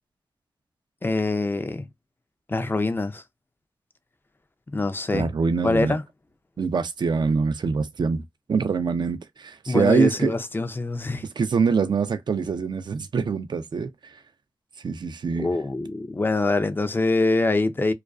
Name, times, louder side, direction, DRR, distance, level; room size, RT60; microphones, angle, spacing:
voice 1, 1.0-1.8 2.5-3.2 4.7-5.3 5.6-6.0 9.7-11.3 15.4-17.9, left 2 dB, 25° left, 0.4 m, -24 dB
voice 2, 5.1-6.0 6.6-8.2 8.5-10.4 11.2-14.2 14.8-15.5, right 5 dB, 60° right, 0.4 m, -24 dB
2.4 x 2.3 x 2.3 m
cardioid pair, 60°, 9 cm